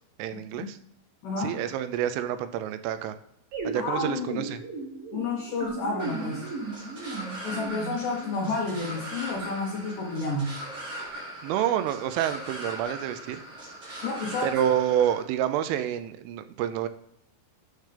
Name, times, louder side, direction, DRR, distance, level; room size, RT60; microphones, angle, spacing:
voice 1, 0.2-0.8 1.4-3.2 3.6-4.6 11.4-13.4 14.4-16.9, right 10 dB, 90° right, 10 dB, 3.2 m, -28 dB
voice 2, 1.2-1.6 3.7-4.4 5.1-6.4 7.1-10.5 14.0-14.5, left 3 dB, 80° left, -1 dB, 1.8 m, -31 dB
sound 1, 3.5-9.0, right 3 dB, 60° right, 2.8 m, -36 dB
sound 2, 6.0-15.2, right 1 dB, 35° right, 3.8 m, -40 dB
9.9 x 6.7 x 3.3 m, 0.78 s
omnidirectional pair, 5.6 m